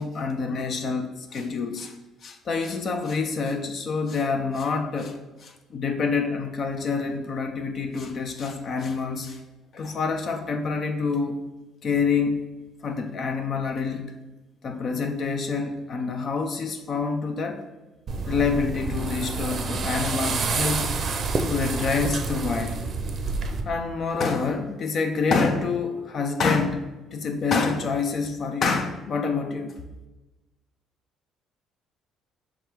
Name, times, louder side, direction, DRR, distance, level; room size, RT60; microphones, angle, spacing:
voice 1, 0.0-1.9 2.2-9.4 9.7-11.4 11.8-12.4 12.8-14.1 14.6-17.6 18.3-21.0 21.5-22.8 23.6-26.8 27.1-29.7, left 4 dB, 50° left, 5 dB, 0.4 m, -27 dB
sound 1, 18.1-23.6, right 4 dB, 50° right, 0.5 m, -28 dB
3.5 x 3.2 x 4.6 m, 1.1 s
cardioid pair, 90°, 0 cm